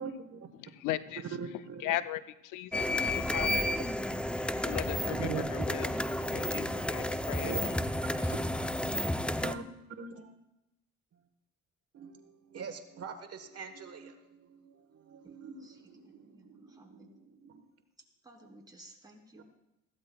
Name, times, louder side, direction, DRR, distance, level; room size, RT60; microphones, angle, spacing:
voice 1, 0.0-0.5 1.2-1.9 5.1-5.6 7.4-7.6 9.4-10.3 11.9-17.6 19.4-19.5, right 6 dB, 55° right, 7 dB, 1.2 m, -43 dB
voice 2, 0.6-1.2 1.5-3.7 4.4-6.0 6.3-7.7 8.2-8.3, left 14 dB, 85° left, 14 dB, 0.5 m, -38 dB
sound 1, 2.7-9.5, left 1 dB, 5° left, 0.5 m, -31 dB
voice 3, 15.4-17.2 18.2-19.4, right 1 dB, 15° right, 0 dB, 2.8 m, -57 dB
20.0 x 14.5 x 2.3 m, 0.90 s
cardioid pair, 90°, 30 cm